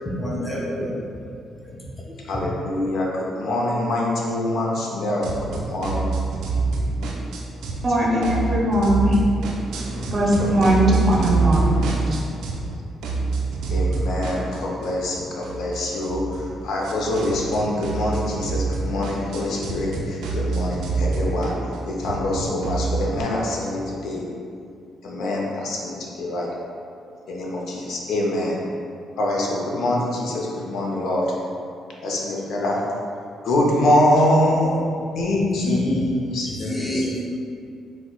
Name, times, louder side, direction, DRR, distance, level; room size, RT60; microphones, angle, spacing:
voice 1, 0.1-0.9 1.7-1.8 34.6-34.9 35.5-35.9 36.5-37.4, equal, 10° left, -4 dB, 0.5 m, -28 dB
voice 2, 2.2-6.1 8.0-8.2 10.8-10.9 13.7-21.6 21.8-24.3 25.0-26.5 27.3-28.6 29.2-31.3 32.0-32.8 33.4-34.7 35.1-37.1, left 1 dB, 75° left, -3 dB, 0.5 m, -24 dB
sound 1, 5.2-7.9 8.2-12.7 13.0-23.2, right 3 dB, 80° right, 0.4 m, -26 dB
voice 3, 7.8-9.2 10.0-11.7, equal, 35° right, -3 dB, 0.6 m, -19 dB
4.2 x 2.1 x 2.2 m, 2.4 s
cardioid pair, 90°, 0 cm